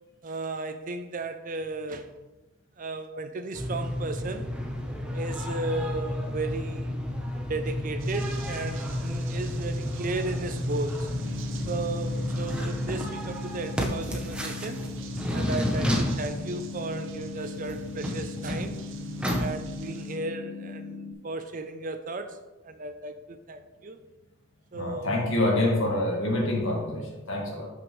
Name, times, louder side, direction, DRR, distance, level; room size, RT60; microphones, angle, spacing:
voice 1, 0.2-2.1 2.8-4.5 5.1-6.9 7.5-11.1 11.7-14.8 15.3-18.8 19.3-22.4 22.6-24.0 24.7-25.2, right 2 dB, 35° right, 8 dB, 0.5 m, -35 dB
sound 1, 3.5-19.5, left 1 dB, 5° right, 0.9 m, -31 dB
sound 2, 8.0-20.2, right 2 dB, 60° right, 0.8 m, -42 dB
sound 3, 11.1-21.1, left 4 dB, 85° left, 1.5 m, -40 dB
voice 2, 24.7-27.7, left 1 dB, 60° left, -1 dB, 1.9 m, -26 dB
11.5 x 6.1 x 3.2 m, 1.1 s
head